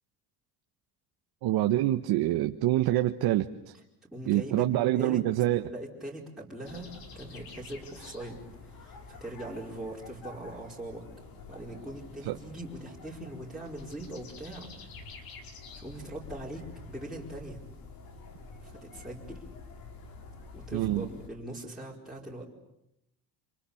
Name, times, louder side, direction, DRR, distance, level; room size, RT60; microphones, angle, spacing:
voice 1, 1.4-3.7 4.3-5.6 12.3-12.4 20.7-21.1, right 14 dB, 65° right, 7 dB, 1.3 m, -26 dB
voice 2, 4.1-4.7 4.9-5.2 5.7-11.0 11.4-14.9 15.7-16.6 16.9-17.6 18.6-19.4 20.5-22.5, right 1 dB, ahead, -6 dB, 4.8 m, -41 dB
sound 1, 6.7-21.3, left 3 dB, 55° left, 5.4 m, -48 dB
29.5 x 27.5 x 7.2 m, 0.84 s
cardioid pair, 135°, 41 cm